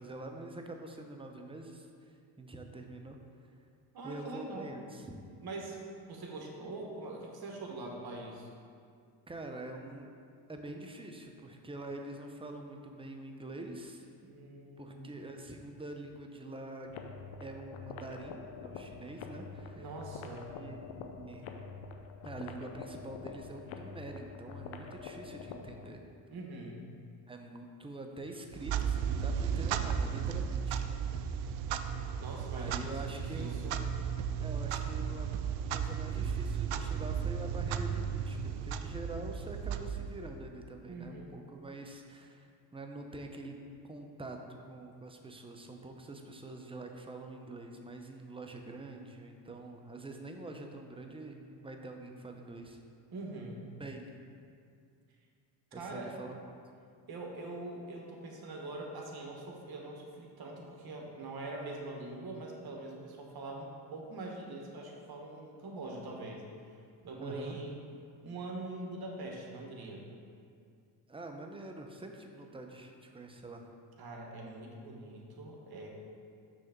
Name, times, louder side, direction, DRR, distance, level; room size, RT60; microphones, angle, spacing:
voice 1, 0.0-3.2 4.0-5.2 9.3-10.1 10.5-14.0 14.8-16.9 17.4-19.9 20.5-21.5 22.2-26.0 27.3-30.8 32.5-33.6 34.4-35.3 35.7-43.6 43.8-52.8 53.8-54.1 55.7-56.6 67.2-67.6 71.1-73.7, right 2 dB, 10° right, 3 dB, 0.7 m, -45 dB
voice 2, 3.9-4.8 5.4-5.8 6.1-8.5 14.2-15.1 19.7-20.5 26.3-26.8 32.2-33.8 40.9-41.3 53.1-53.7 55.7-56.2 57.1-66.5 67.0-67.8 68.2-70.0 74.0-75.9, right 2 dB, 50° right, 0 dB, 1.4 m, -43 dB
sound 1, 16.9-25.9, left 5 dB, 70° left, 0.7 m, -46 dB
Clock, 28.5-40.5, right 7 dB, 70° right, 0.5 m, -34 dB
6.3 x 3.5 x 5.8 m, 2.3 s
supercardioid pair, 65°, 49 cm